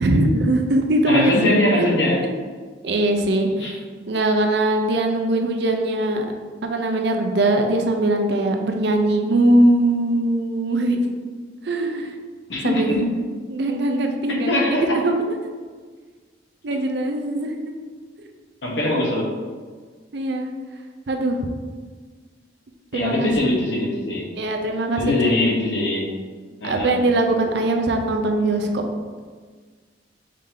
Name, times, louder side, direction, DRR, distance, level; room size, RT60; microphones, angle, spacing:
voice 1, 0.0-1.9 2.8-3.8 4.1-6.3 6.6-11.1 11.6-12.1 12.6-13.2 13.5-14.6 14.9-15.2 16.6-17.6 20.1-20.5 21.1-21.4 22.9-23.3 24.3-25.3 26.6-28.8, right 1 dB, 60° right, 4 dB, 0.5 m, -21 dB
voice 2, 1.1-2.3 3.6-3.7 12.5-13.0 14.3-14.9 18.6-19.3 22.9-24.3 25.0-26.1 26.6-27.0, left 1 dB, 65° left, -2 dB, 1.0 m, -22 dB
5.0 x 2.7 x 3.7 m, 1.5 s
head